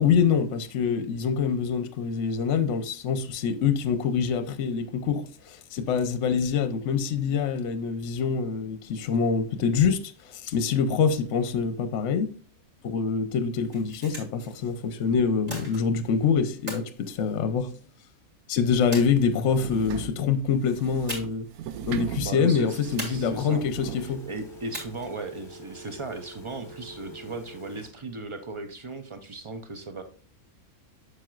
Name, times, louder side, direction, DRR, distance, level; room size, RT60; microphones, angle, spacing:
voice 1, 0.0-12.3 12.8-17.7 18.5-21.5 21.9-24.2, left 6 dB, 60° left, 0.9 m, -25 dB
sound 1, 13.6-14.5 15.5-16.1 16.7-17.9 18.9-19.7 21.1-21.5 21.8-21.9 23.0-23.7 24.7-25.3, equal, 25° right, 2.4 m, -39 dB
sound 2, 19.1-24.1, right 8 dB, 85° right, 1.1 m, -39 dB
voice 2, 22.2-23.7 24.0-30.0, right 2 dB, 50° right, 0.3 m, -37 dB
Telephone, 22.7-27.9, right 1 dB, 20° left, 1.1 m, -45 dB
7.5 x 6.5 x 2.4 m
omnidirectional pair, 1.6 m